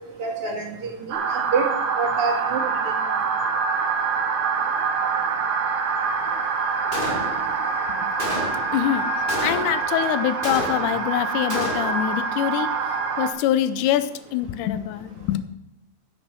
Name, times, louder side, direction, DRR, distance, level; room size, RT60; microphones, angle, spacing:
voice 1, 0.2-1.7 2.0-2.6 3.1-3.2, right 4 dB, 45° right, 1 dB, 2.7 m, -27 dB
sound 1, 1.1-13.3, right 5 dB, 75° right, 3.0 m, -25 dB
Gunshot gunfire, 6.9-7.6 8.2-8.8 9.3-9.9 10.4-11.1 11.5-12.1, left 1 dB, 20° left, 1.3 m, -30 dB
voice 2, 8.7-9.1 9.4-12.7 13.2-15.4, left 12 dB, 75° left, 12 dB, 2.1 m, -24 dB
16.0 x 6.6 x 6.1 m, 0.84 s
omnidirectional pair, 4.1 m